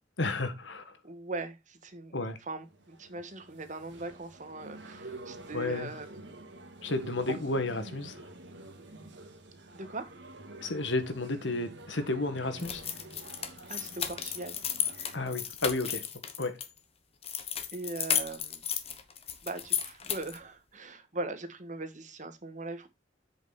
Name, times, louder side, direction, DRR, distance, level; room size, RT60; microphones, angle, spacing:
voice 1, 0.2-1.0 2.1-2.4 5.5-5.9 6.8-8.2 10.6-12.8 15.1-16.0 16.4-16.6, left 2 dB, 80° left, 1.7 m, -32 dB
voice 2, 1.0-6.3 7.3-7.4 9.7-10.1 13.4-14.6 17.7-18.6 19.4-22.9, right 2 dB, 40° right, 1.5 m, -40 dB
sound 1, 2.6-15.3, right 2 dB, 75° right, 1.9 m, -48 dB
sound 2, 12.6-16.7 17.2-20.4, left 8 dB, 35° left, 1.2 m, -34 dB
8.0 x 6.6 x 4.1 m
head